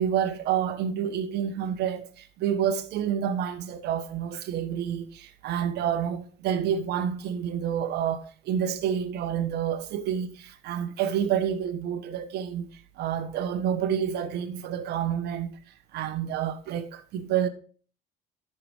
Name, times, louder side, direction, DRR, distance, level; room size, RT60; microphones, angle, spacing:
voice 1, 0.0-15.6 15.9-17.5, right 9 dB, 75° right, 1.2 m, -29 dB
12.5 x 6.7 x 3.5 m
cardioid pair, 110°, 17 cm